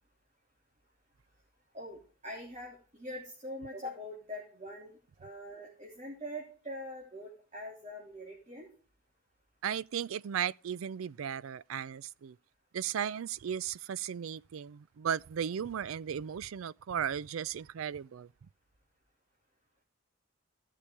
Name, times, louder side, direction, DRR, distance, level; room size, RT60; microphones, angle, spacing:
voice 1, 1.7-8.7, equal, 35° right, 3.5 m, -43 dB
voice 2, 9.6-12.4 12.7-18.3, right 8 dB, 80° right, 0.4 m, -36 dB
16.0 x 6.8 x 3.4 m
head